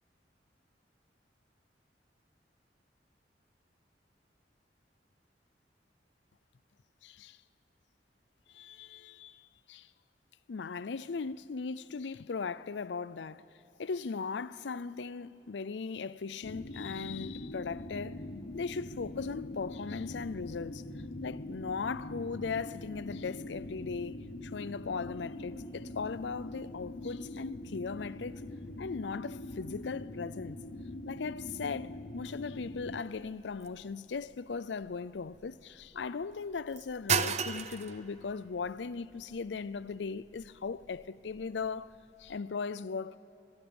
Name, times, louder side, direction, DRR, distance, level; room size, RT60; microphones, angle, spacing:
voice 1, 7.0-7.4 8.5-9.9 10.5-13.5 13.8-18.2 18.5-20.8 21.2-28.4 28.8-30.6 31.1-41.9 42.2-43.2, left 5 dB, 85° left, 0.5 m, -38 dB
sound 1, 16.4-33.0, left 1 dB, 55° left, 1.0 m, -43 dB
sound 2, 32.3-42.4, right 7 dB, 40° right, 0.7 m, -39 dB
24.0 x 23.0 x 7.1 m
head